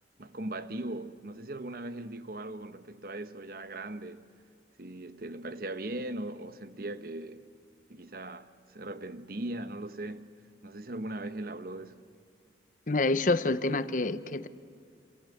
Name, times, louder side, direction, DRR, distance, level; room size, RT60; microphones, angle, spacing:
voice 1, 0.2-4.3 4.8-7.5 7.9-12.0, right 1 dB, 55° right, 1.1 m, -39 dB
voice 2, 12.9-14.5, left 2 dB, 45° left, 0.9 m, -27 dB
28.5 x 24.5 x 7.9 m
head